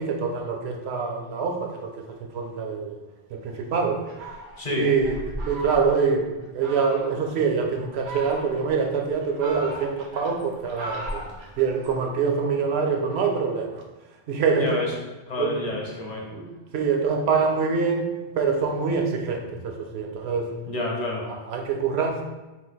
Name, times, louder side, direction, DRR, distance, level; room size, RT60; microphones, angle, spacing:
voice 1, 0.0-3.0 3.3-4.0 4.7-5.2 5.5-11.3 11.6-13.8 14.3-14.8 15.4-15.6 16.3-16.5 16.7-18.1 18.4-20.5 21.3-22.2, right 5 dB, 70° right, 2 dB, 0.9 m, -25 dB
Fowl, 4.1-6.1 6.6-7.2 7.8-8.8 9.2-12.0, right 1 dB, 85° right, 1.1 m, -37 dB
voice 2, 4.6-4.9 14.6-14.9 15.3-16.3 20.7-21.3, left 2 dB, 40° left, -2 dB, 0.9 m, -29 dB
4.2 x 2.5 x 3.9 m, 1.1 s
omnidirectional pair, 1.2 m